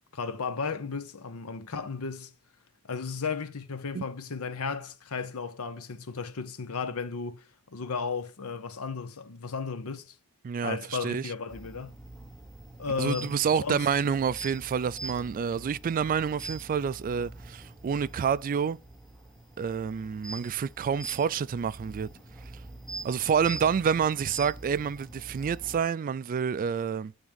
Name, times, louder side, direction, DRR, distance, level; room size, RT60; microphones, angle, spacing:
voice 1, 0.1-2.3 2.9-7.4 7.7-10.1 10.6-11.9 12.8-13.9, left 5 dB, 70° left, 0.8 m, -34 dB
voice 2, 10.4-11.3 13.0-18.8 19.6-22.1 23.0-27.1, right 7 dB, 40° right, 0.3 m, -28 dB
sound 1, 11.5-25.8, right 2 dB, ahead, 1.1 m, -44 dB
8.8 x 3.6 x 5.1 m
head